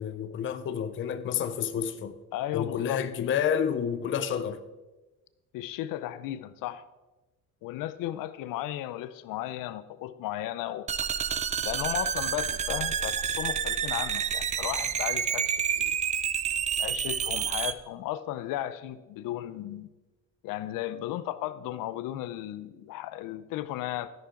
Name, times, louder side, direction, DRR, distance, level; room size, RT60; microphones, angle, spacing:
voice 1, 0.0-2.1 2.5-4.6, left 8 dB, 40° left, 0.6 m, -29 dB
voice 2, 2.3-3.1 5.5-6.9 7.6-11.1 11.6-16.0 16.8-19.9 20.4-24.1, left 13 dB, 85° left, 0.7 m, -35 dB
sound 1, 10.9-17.7, right 8 dB, 25° right, 0.3 m, -29 dB
13.0 x 10.5 x 3.8 m
cardioid pair, 180°, 32 cm